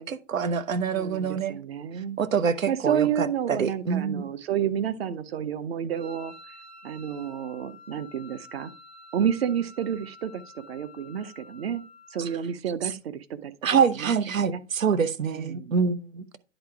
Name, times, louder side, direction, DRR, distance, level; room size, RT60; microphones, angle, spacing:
voice 1, 0.0-1.6 2.2-4.2 13.6-16.2, right 6 dB, 85° right, 1.0 m, -25 dB
voice 2, 0.9-2.2 2.7-6.3 6.8-8.7 9.1-11.8 12.1-13.5 14.0-14.1 14.4-14.6 15.3-15.7, right 8 dB, 50° right, 0.9 m, -30 dB
Wind instrument woodwind instrument, 5.9-12.5, left 2 dB, 70° right, 3.5 m, -49 dB
10.5 x 3.9 x 4.7 m
hypercardioid pair, 145°, 39 cm